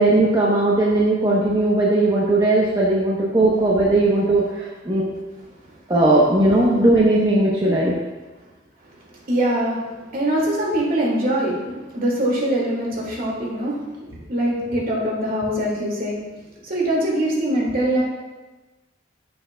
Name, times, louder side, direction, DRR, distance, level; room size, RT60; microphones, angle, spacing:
voice 1, 0.0-5.0 5.9-7.9, right 2 dB, 20° right, -5 dB, 0.9 m, -18 dB
voice 2, 8.9-9.8 10.1-13.8 14.1-16.2 16.6-18.0, right 1 dB, 50° right, -4 dB, 2.2 m, -23 dB
10.0 x 6.9 x 2.3 m, 1.2 s
head